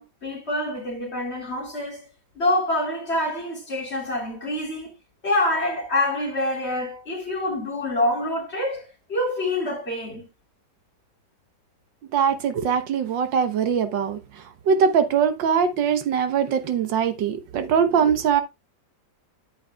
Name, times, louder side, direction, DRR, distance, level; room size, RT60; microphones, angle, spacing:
voice 1, 0.0-2.0 2.4-4.9 5.2-8.8 9.1-10.3, left 1 dB, 35° left, 3.4 m, -26 dB
voice 2, 12.1-14.2 14.7-18.4, right 7 dB, 75° right, 1.6 m, -22 dB
11.0 x 8.8 x 2.3 m
omnidirectional pair, 2.1 m